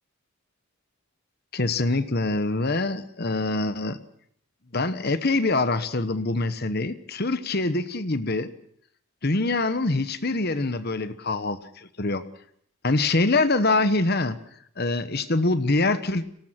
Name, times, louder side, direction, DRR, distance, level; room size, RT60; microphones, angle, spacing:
voice 1, 1.5-4.0 4.7-8.5 9.2-12.2 12.8-14.4 14.8-16.2, left 2 dB, 45° left, 12 dB, 1.1 m, -24 dB
24.5 x 18.5 x 5.9 m, 0.69 s
head